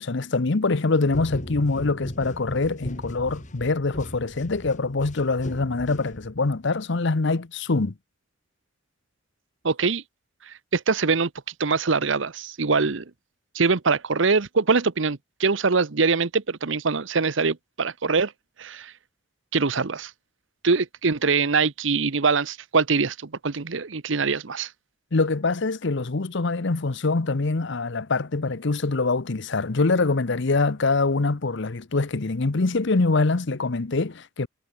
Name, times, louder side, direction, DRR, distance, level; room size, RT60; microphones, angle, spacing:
voice 1, 0.0-7.9 25.1-34.5, left 3 dB, 65° left, 0.9 m, -24 dB
sound 1, 1.1-6.6, left 1 dB, 40° left, 3.3 m, -37 dB
voice 2, 9.6-10.0 10.5-11.3 11.6-13.0 13.5-18.3 18.6-18.9 19.5-20.1 20.6-24.7, right 4 dB, 65° right, 0.9 m, -23 dB
head